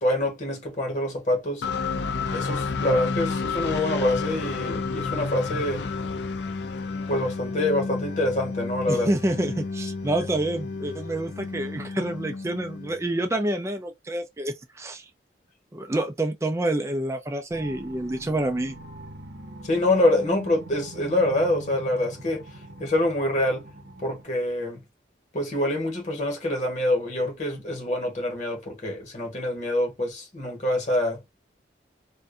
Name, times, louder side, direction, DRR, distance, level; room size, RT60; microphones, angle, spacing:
voice 1, 0.0-1.7 2.3-5.9 7.1-9.1 19.6-22.5 22.8-23.7 24.0-24.8 25.3-31.2, left 1 dB, 40° left, 1.1 m, -25 dB
sound 1, 1.6-13.4, left 4 dB, 65° left, 0.4 m, -31 dB
voice 2, 8.9-15.1 15.7-18.7, right 1 dB, 15° right, 0.4 m, -28 dB
sound 2, 17.5-24.2, right 1 dB, 60° right, 0.7 m, -42 dB
2.6 x 2.2 x 2.5 m
head